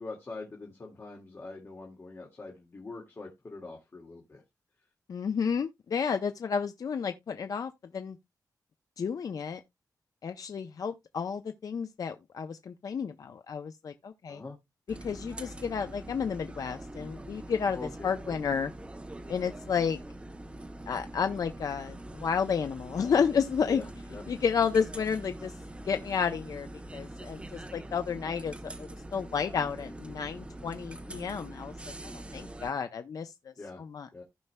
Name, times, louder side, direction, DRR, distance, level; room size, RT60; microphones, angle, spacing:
voice 1, 0.0-4.4 14.3-14.6 17.7-18.4 23.7-24.2 33.6-33.8 34.1-34.2, left 3 dB, 35° left, 2.0 m, -43 dB
voice 2, 5.1-8.2 9.0-9.6 10.2-14.4 15.0-18.7 19.3-20.0 20.9-23.8 24.3-25.5 25.8-31.7 32.0-33.3 33.8-34.2, left 6 dB, 60° left, 0.6 m, -31 dB
sound 1, 14.9-32.7, right 1 dB, 15° right, 0.7 m, -44 dB
15.5 x 5.4 x 2.2 m
wide cardioid pair, 155°, 7 cm